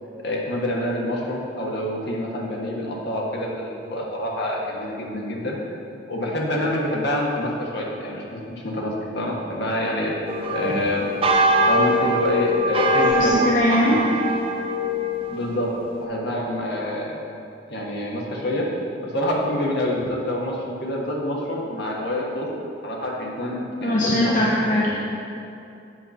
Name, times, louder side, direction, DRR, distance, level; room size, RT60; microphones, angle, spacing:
voice 1, 0.2-5.6 6.1-10.1 10.5-11.1 11.6-13.4 13.7-14.0 15.3-17.2 17.7-18.7 19.0-22.5 22.8-24.4 24.7-24.9, left 1 dB, 65° left, -3 dB, 1.3 m, -27 dB
sound 1, 10.3-16.0, equal, 30° right, 0.6 m, -22 dB
voice 2, 13.1-14.0 23.8-24.9, left 1 dB, 45° left, -5 dB, 0.8 m, -20 dB
7.7 x 4.2 x 6.3 m, 2.6 s
head